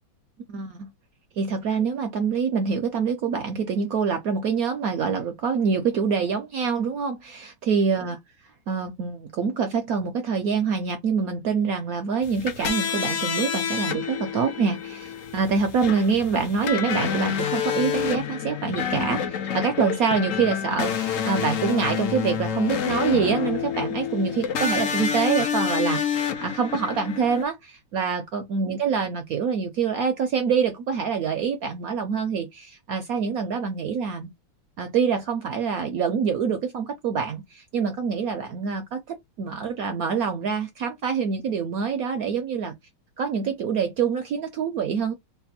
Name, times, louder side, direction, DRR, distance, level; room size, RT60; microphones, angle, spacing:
voice 1, 0.5-0.9 1.4-8.2 8.7-34.3 34.8-42.7 43.2-45.1, right 6 dB, 80° right, 0.8 m, -25 dB
sound 1, 12.2-27.4, left 8 dB, 85° left, 0.7 m, -28 dB
3.3 x 2.3 x 4.1 m
omnidirectional pair, 2.2 m